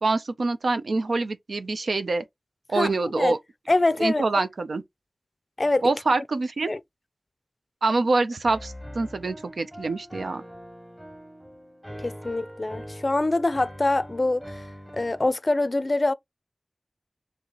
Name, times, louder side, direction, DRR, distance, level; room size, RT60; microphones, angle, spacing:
voice 1, 0.0-2.2 2.7-3.4 4.0-4.8 5.8-6.7 7.8-10.4, right 3 dB, 90° right, 0.4 m, -25 dB
voice 2, 2.7-3.3 3.7-4.2 5.6-5.9 6.7-6.8 12.0-14.6 14.9-16.1, left 2 dB, 45° left, 0.4 m, -24 dB
Piano, 8.4-15.3, equal, 10° right, 1.1 m, -42 dB
2.9 x 2.8 x 3.8 m
wide cardioid pair, 55°, 0 cm